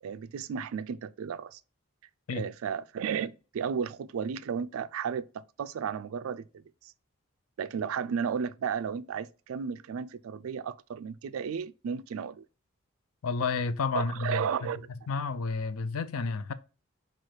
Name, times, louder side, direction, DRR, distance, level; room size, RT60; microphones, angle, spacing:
voice 1, 0.0-1.6 2.3-6.9 7.6-12.4 13.9-14.9, right 7 dB, 80° right, 0.3 m, -34 dB
voice 2, 13.2-14.7 15.1-16.5, left 4 dB, 90° left, 0.5 m, -31 dB
4.7 x 2.4 x 4.4 m
head